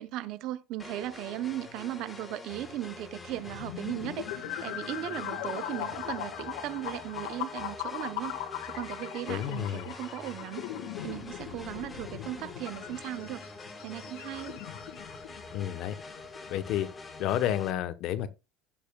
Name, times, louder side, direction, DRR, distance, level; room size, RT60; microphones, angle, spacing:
voice 1, 0.0-10.6 11.0-13.4 13.8-14.6, right 14 dB, 50° right, 0.7 m, -37 dB
sound 1, 0.8-17.7, left 3 dB, 15° left, 1.3 m, -46 dB
sound 2, 3.3-17.5, left 11 dB, 85° left, 1.6 m, -40 dB
voice 2, 9.3-9.9 15.5-15.9 16.5-16.9 17.2-18.3, left 11 dB, 50° left, 0.9 m, -30 dB
16.0 x 6.8 x 2.3 m
cardioid pair, 160°, 0 cm